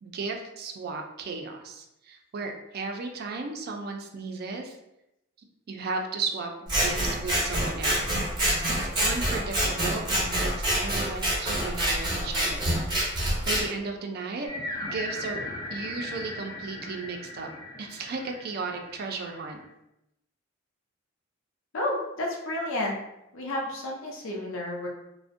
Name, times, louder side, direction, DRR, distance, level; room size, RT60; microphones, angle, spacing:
voice 1, 0.0-4.8 5.4-8.2 8.7-12.7 13.5-14.5 14.8-15.4 15.7-17.5 17.8-19.6, right 4 dB, 55° right, 3 dB, 0.4 m, -35 dB
Scissors, 6.7-13.6, right 1 dB, 25° right, 0.7 m, -26 dB
sound 1, 14.5-19.7, left 2 dB, 20° left, 0.3 m, -38 dB
voice 2, 21.7-23.0 23.3-24.9, left 1 dB, 90° left, -1 dB, 0.5 m, -31 dB
2.5 x 2.0 x 2.4 m, 0.86 s
head